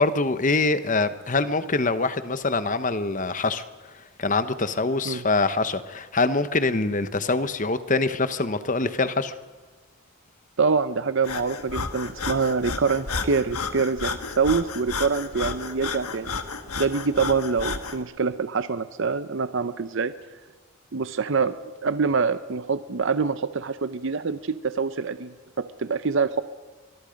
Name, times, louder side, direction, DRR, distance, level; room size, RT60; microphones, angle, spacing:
voice 1, 0.0-3.6 4.2-9.3, left 3 dB, 35° left, 12 dB, 1.0 m, -24 dB
voice 2, 10.6-16.3 16.8-20.1 20.9-21.6 21.8-26.4, right 5 dB, 60° right, 12 dB, 0.7 m, -25 dB
Breathing, 11.2-18.0, left 4 dB, 90° left, 1.5 m, -32 dB
24.5 x 22.5 x 5.2 m, 1.3 s
head